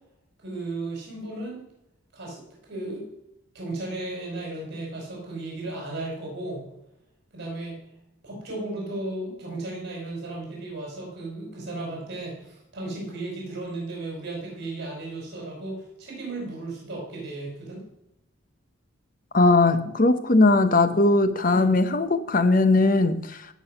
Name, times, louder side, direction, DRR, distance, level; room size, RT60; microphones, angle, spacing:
voice 1, 0.4-1.6 2.1-2.4 2.7-3.1 3.5-6.6 7.3-7.8 8.2-17.8 21.5-21.7, right 2 dB, 55° right, 4.7 m, -35 dB
voice 2, 19.3-23.4, left 2 dB, 40° left, 0.8 m, -19 dB
16.5 x 6.2 x 5.6 m
head